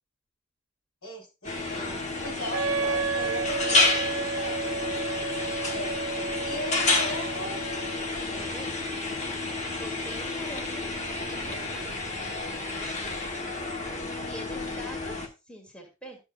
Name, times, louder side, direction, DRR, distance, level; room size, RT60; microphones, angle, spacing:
voice 1, 1.0-5.9 6.4-8.5 10.1-10.7 11.3-11.7 12.5-12.7 13.8-14.5, equal, 85° left, -1 dB, 3.9 m, -40 dB
sound 1, 1.4-15.3, left 2 dB, 35° left, 1.1 m, -30 dB
Wind instrument woodwind instrument, 2.5-8.1, right 4 dB, 70° right, 0.5 m, -32 dB
voice 2, 8.2-8.7 9.1-9.5 9.8-10.9 11.3-11.9 14.3-15.2 15.5-16.2, equal, 5° left, 1 dB, 2.0 m, -44 dB
12.5 x 7.2 x 2.4 m, 0.28 s
head